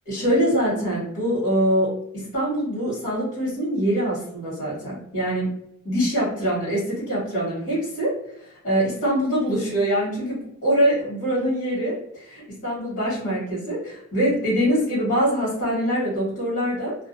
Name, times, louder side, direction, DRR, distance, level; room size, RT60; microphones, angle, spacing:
voice 1, 0.1-5.6 5.8-8.2 8.4-17.0, equal, 50° left, -9 dB, 1.2 m, -24 dB
2.3 x 2.3 x 2.6 m, 0.76 s
head